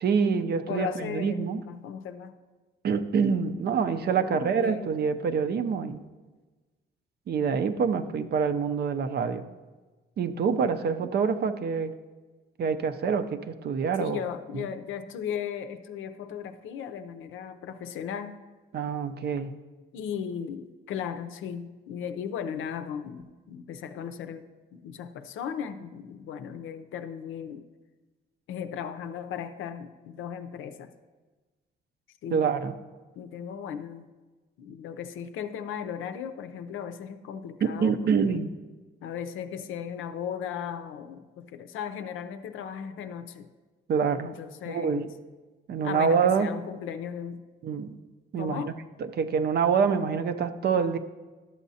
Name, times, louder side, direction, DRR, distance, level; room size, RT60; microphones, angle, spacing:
voice 1, 0.0-1.6 2.8-6.0 7.3-9.5 10.2-12.0 12.6-14.2 14.5-14.7 18.7-19.5 32.3-32.7 37.6-38.5 43.9-44.3 44.7-45.1 45.7-46.5 47.6-48.0 48.3-48.7 49.1-51.0, right 6 dB, 55° right, 10 dB, 0.6 m, -26 dB
voice 2, 0.7-2.4 4.2-5.0 14.0-18.4 19.9-24.5 24.7-27.6 28.5-30.9 32.2-32.6 33.2-34.1 34.6-38.4 39.0-43.5 44.2-45.1 45.8-47.5 48.4-48.8, left 8 dB, 80° left, 10 dB, 0.6 m, -36 dB
12.0 x 7.2 x 2.8 m, 1.3 s
cardioid pair, 90°, 20 cm